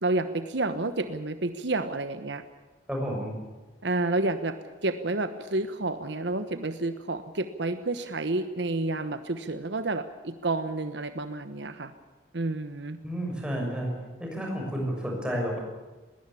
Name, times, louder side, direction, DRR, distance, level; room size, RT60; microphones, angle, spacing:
voice 1, 0.0-2.4 3.8-4.6 4.8-11.9 12.3-13.0, right 2 dB, 65° right, 10 dB, 1.1 m, -30 dB
voice 2, 2.9-3.3 13.0-13.9 14.2-15.6, equal, 5° right, 0 dB, 6.5 m, -31 dB
21.0 x 18.0 x 8.5 m, 1.3 s
head